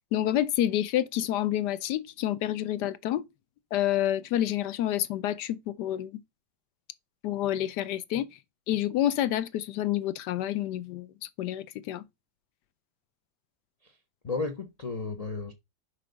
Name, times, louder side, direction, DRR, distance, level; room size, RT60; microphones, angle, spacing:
voice 1, 0.1-3.2 3.7-6.2 7.2-8.3 8.7-12.0, left 12 dB, 75° left, 1.1 m, -28 dB
voice 2, 14.2-15.5, left 3 dB, 55° left, 0.4 m, -33 dB
6.0 x 5.0 x 3.9 m
omnidirectional pair, 2.0 m